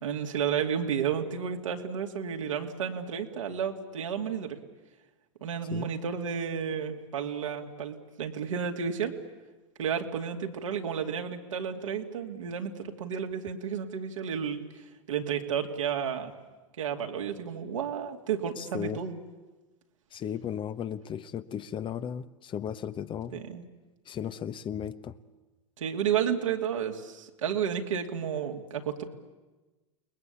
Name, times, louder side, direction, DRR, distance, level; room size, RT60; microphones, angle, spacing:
voice 1, 0.0-4.6 5.4-9.2 9.8-14.7 15.1-16.3 16.8-19.2 23.3-23.6 25.8-29.0, right 7 dB, 80° right, 3 dB, 2.7 m, -32 dB
voice 2, 18.6-19.0 20.1-23.4 24.1-25.2, left 9 dB, 30° left, 12 dB, 1.1 m, -35 dB
29.5 x 21.0 x 8.6 m, 1.2 s
hypercardioid pair, 90°, 16 cm